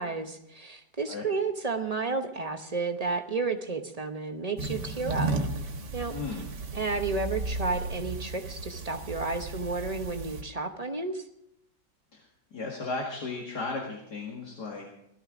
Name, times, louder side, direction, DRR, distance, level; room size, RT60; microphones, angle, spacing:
voice 1, 0.0-5.3 5.9-6.1 6.7-11.2, right 3 dB, 30° right, 6 dB, 0.7 m, -32 dB
sound 1, 4.6-10.4, right 3 dB, 70° right, 2.1 m, -34 dB
voice 2, 6.1-6.5 12.1-14.9, left 3 dB, 65° left, 0 dB, 2.5 m, -35 dB
17.0 x 13.5 x 5.0 m, 0.78 s
omnidirectional pair, 1.9 m